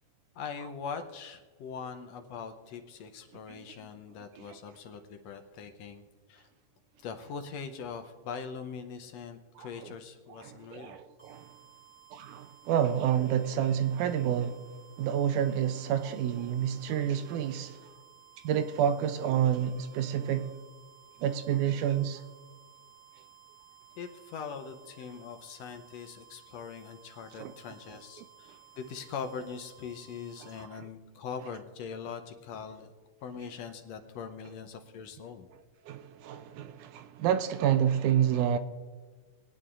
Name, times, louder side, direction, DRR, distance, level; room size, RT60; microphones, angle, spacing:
voice 1, 0.3-6.0 6.3-6.5 7.0-11.0 24.0-32.9 33.2-35.5, left 6 dB, 75° left, 1.6 m, -42 dB
voice 2, 9.6-9.9 10.3-11.5 12.1-14.6 15.0-17.9 18.4-20.5 21.2-22.2 27.4-27.5 30.4-30.9 35.9-38.6, right 9 dB, 80° right, 2.0 m, -29 dB
sound 1, 11.2-30.7, right 9 dB, 15° right, 4.3 m, -57 dB
22.0 x 9.3 x 2.4 m
omnidirectional pair, 3.6 m